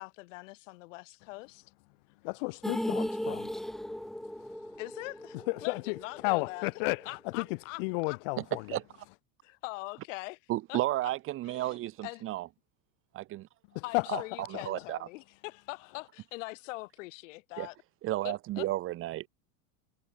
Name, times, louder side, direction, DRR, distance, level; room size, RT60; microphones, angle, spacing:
voice 1, 0.0-1.7 4.8-6.7 7.0-8.2 9.4-10.4 10.7-11.1 11.5-11.7 12.0-12.2 13.8-17.7 18.2-18.7, left 22 dB, 60° left, 7.9 m, -43 dB
voice 2, 2.4-3.5 5.5-6.0 6.2-7.1 7.3-7.5 7.8-8.6 13.9-14.2, left 30 dB, 45° left, 0.5 m, -32 dB
sound 1, 2.6-6.8 7.0-7.1 7.5-7.6, equal, ahead, 1.2 m, -37 dB
voice 3, 8.4-8.8 10.5-12.5 13.1-13.5 14.1-14.2 14.5-15.0 17.6-17.7 18.0-19.3, right 15 dB, 30° right, 2.4 m, -33 dB
supercardioid pair, 170°, 41 cm